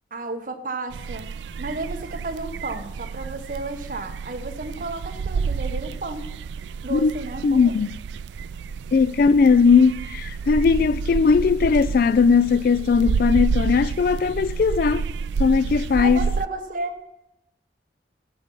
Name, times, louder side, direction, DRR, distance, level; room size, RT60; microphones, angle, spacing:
voice 1, 0.1-1.3 1.6-6.3 6.8-7.8 16.0-17.0, right 2 dB, 50° right, 1.1 m, -32 dB
sound 1, 0.9-16.5, right 5 dB, 80° right, 0.3 m, -30 dB
voice 2, 7.4-7.9 8.9-15.1 15.4-16.2, left 5 dB, 55° left, 0.3 m, -18 dB
15.0 x 7.6 x 5.4 m
head